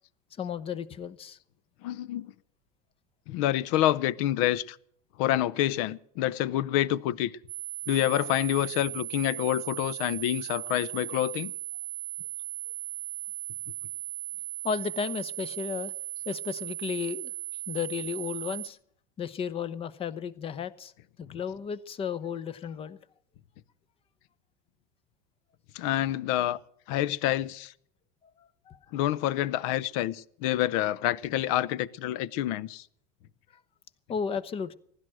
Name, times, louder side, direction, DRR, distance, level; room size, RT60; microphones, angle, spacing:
voice 1, 0.4-1.4 14.6-15.9 16.3-17.3 17.7-18.8 19.2-20.9 21.2-23.0 28.4-28.8 34.1-34.7, left 6 dB, 30° left, 0.9 m, -33 dB
voice 2, 1.8-2.3 3.3-4.8 5.2-7.3 7.9-11.5 21.3-21.4 25.7-26.6 26.9-27.7 28.9-32.9, left 13 dB, 65° left, 0.7 m, -27 dB
sound 1, 7.5-18.7, right 13 dB, 25° right, 1.3 m, -37 dB
16.0 x 11.5 x 7.6 m
supercardioid pair, 120°, 20 cm